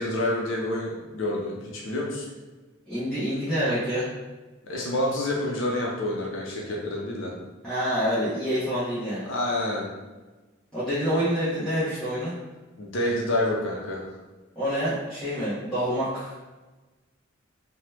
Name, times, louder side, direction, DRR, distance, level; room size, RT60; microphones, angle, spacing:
voice 1, 0.0-2.3 4.6-7.4 9.3-9.9 12.8-14.0, left 1 dB, 70° left, -3 dB, 0.6 m, -28 dB
voice 2, 2.9-4.1 7.6-9.3 10.7-12.3 14.5-16.3, equal, 5° left, -15 dB, 0.9 m, -27 dB
2.9 x 2.2 x 3.2 m, 1.2 s
head